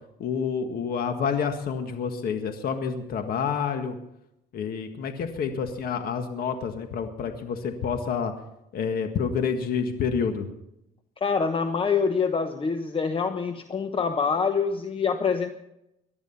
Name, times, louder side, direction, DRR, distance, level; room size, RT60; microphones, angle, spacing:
voice 1, 0.2-4.0 4.5-8.3 8.7-10.5, left 6 dB, 60° left, 6 dB, 1.7 m, -28 dB
voice 2, 11.2-15.5, left 5 dB, 30° left, 7 dB, 1.1 m, -25 dB
19.0 x 12.5 x 5.7 m, 0.84 s
cardioid pair, 110°, 17 cm